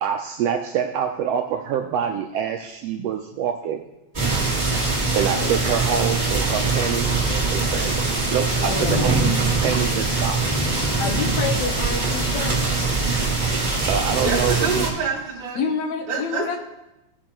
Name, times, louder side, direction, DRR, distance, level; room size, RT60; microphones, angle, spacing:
voice 1, 0.0-3.8 5.1-10.7 13.9-14.9, right 8 dB, 80° right, 5 dB, 1.5 m, -26 dB
sound 1, 4.1-14.9, right 3 dB, 15° right, 2.3 m, -22 dB
voice 2, 8.6-9.1 11.0-12.7 14.3-14.4 15.6-16.6, left 5 dB, 75° left, 5 dB, 2.1 m, -28 dB
voice 3, 14.2-15.7 16.1-16.6, right 4 dB, 50° right, -1 dB, 2.9 m, -27 dB
17.5 x 6.9 x 3.0 m, 0.93 s
omnidirectional pair, 3.4 m